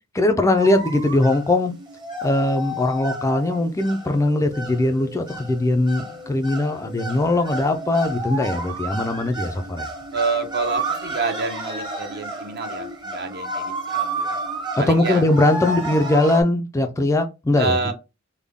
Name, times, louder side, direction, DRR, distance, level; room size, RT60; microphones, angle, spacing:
voice 1, 0.1-1.7 2.2-9.9 14.8-17.9, left 2 dB, 15° left, 0.4 m, -20 dB
sound 1, 0.6-16.4, right 2 dB, 20° right, 0.9 m, -31 dB
voice 2, 10.1-14.4 14.8-15.2 17.6-17.9, right 4 dB, 50° right, 0.8 m, -27 dB
3.6 x 2.2 x 3.5 m
head